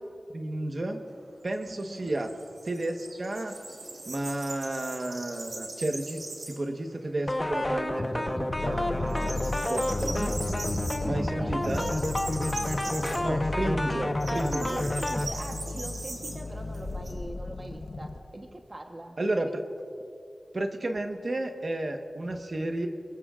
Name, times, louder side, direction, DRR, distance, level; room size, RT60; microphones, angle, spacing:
voice 1, 0.3-1.0 1.4-2.3 2.6-3.5 4.1-9.3 9.6-10.3 11.0-11.9 13.2-14.9 19.2-19.6 20.5-22.9, right 1 dB, 50° right, 4 dB, 1.2 m, -32 dB
sound 1, 0.9-6.8 7.1-7.2 7.6-8.4 8.6-17.1, right 2 dB, 75° right, 3.5 m, -41 dB
voice 2, 1.6-2.1 11.0-12.1 12.3-13.1 14.6-19.2, right 1 dB, 30° right, 3 dB, 1.1 m, -42 dB
sound 2, 7.3-15.3, left 1 dB, 25° left, 0.9 m, -30 dB
sound 3, 8.5-18.2, left 3 dB, 70° left, 1.0 m, -36 dB
26.0 x 22.0 x 2.5 m, 2.6 s
wide cardioid pair, 95°, 0 cm